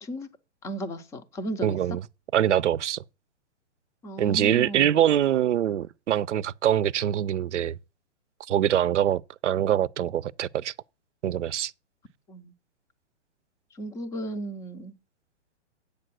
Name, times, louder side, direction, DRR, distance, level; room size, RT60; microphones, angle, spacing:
voice 1, 0.6-2.0 4.0-5.0 12.3-12.5 13.7-14.9, right 1 dB, 10° left, 0.5 m, -35 dB
voice 2, 1.6-2.0 2.3-3.0 4.2-7.8 8.5-10.7 11.2-11.7, right 10 dB, 80° right, 0.6 m, -24 dB
8.5 x 6.6 x 6.1 m
hypercardioid pair, 140°, 35 cm